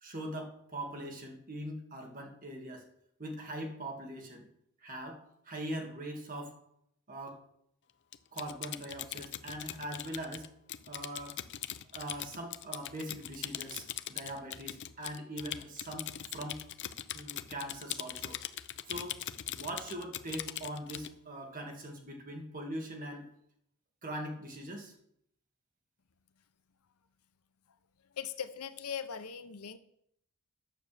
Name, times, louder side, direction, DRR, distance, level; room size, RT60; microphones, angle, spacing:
voice 1, 0.0-2.9 3.2-4.5 4.8-6.6 7.1-7.4 8.3-10.5 10.9-11.4 11.9-16.7 17.1-18.4 18.9-19.2 19.5-23.3 24.0-24.9, right 1 dB, 40° right, 2 dB, 2.0 m, -41 dB
Typing, 8.1-21.1, left 12 dB, 50° left, 0.5 m, -41 dB
voice 2, 28.1-29.8, left 7 dB, 85° left, 11 dB, 0.8 m, -40 dB
9.5 x 6.9 x 6.8 m, 0.73 s
head